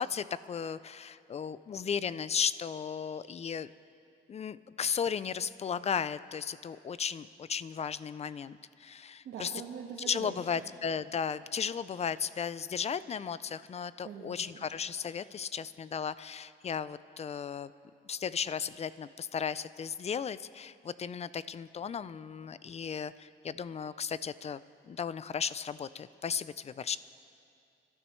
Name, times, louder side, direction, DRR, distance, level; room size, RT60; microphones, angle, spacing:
voice 1, 0.0-3.7 4.3-9.5 10.1-17.7 18.1-27.0, left 7 dB, 35° left, 17 dB, 0.4 m, -35 dB
voice 2, 9.2-10.7 14.0-14.7, right 6 dB, 70° right, -3 dB, 1.5 m, -43 dB
26.0 x 12.0 x 3.2 m, 2.6 s
cardioid pair, 90°, 20 cm